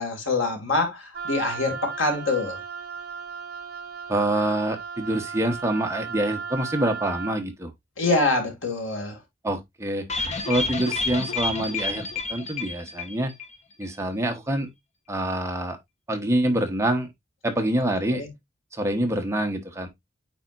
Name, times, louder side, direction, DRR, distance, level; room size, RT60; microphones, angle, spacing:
voice 1, 0.0-2.6 8.0-9.2 18.1-18.3, left 2 dB, 85° left, 2.3 m, -25 dB
Wind instrument woodwind instrument, 1.1-7.4, right 5 dB, 55° right, 1.4 m, -36 dB
voice 2, 4.1-7.7 9.4-10.1 10.5-13.3 13.8-14.7 15.1-15.8 16.1-17.1 17.4-18.2 18.7-19.9, right 1 dB, 15° right, 1.1 m, -26 dB
sound 1, 10.1-13.6 13.8-13.9 14.2-14.3, left 3 dB, 35° left, 1.2 m, -29 dB
9.0 x 4.3 x 2.5 m
head